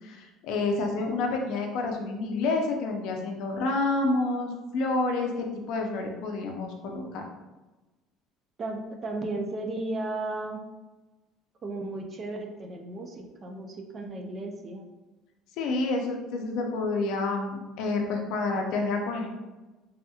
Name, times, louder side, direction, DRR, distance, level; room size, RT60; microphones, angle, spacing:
voice 1, 0.0-7.2 15.6-19.4, left 3 dB, 65° left, 2 dB, 0.5 m, -29 dB
voice 2, 8.6-10.7 11.6-14.8, right 2 dB, 25° right, 3 dB, 0.3 m, -34 dB
3.4 x 2.8 x 2.3 m, 1.1 s
cardioid pair, 160°, 0 cm